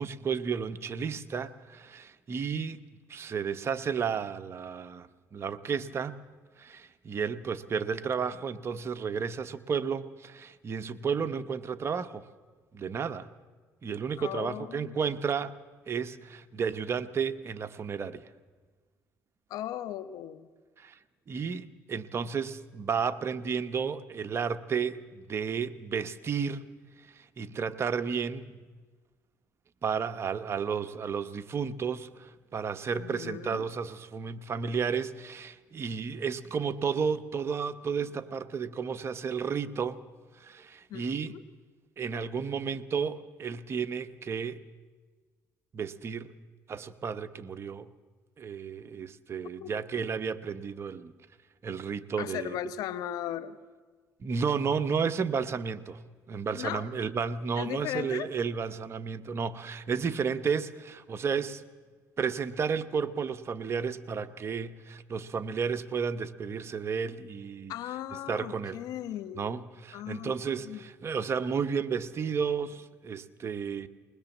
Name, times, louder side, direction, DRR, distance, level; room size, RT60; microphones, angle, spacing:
voice 1, 0.0-2.8 3.1-6.2 6.6-12.2 12.7-13.3 13.8-15.5 15.9-18.3 20.8-21.0 21.3-26.6 27.0-28.6 29.8-40.0 40.4-41.3 42.0-44.6 45.7-46.3 46.7-47.9 48.4-51.1 51.6-52.6 54.2-56.0 56.3-61.6 62.2-67.7 68.3-68.8 69.4-73.9, right 6 dB, 40° right, 10 dB, 1.1 m, -32 dB
voice 2, 14.2-14.9 19.5-20.5 32.9-33.7 40.9-41.4 49.6-49.8 52.2-53.6 56.5-56.8 57.6-58.3 67.7-69.5 69.9-70.3 70.6-70.8, left 11 dB, 75° left, 13 dB, 1.1 m, -37 dB
20.5 x 20.0 x 7.3 m, 1.4 s
supercardioid pair, 85°, 6 cm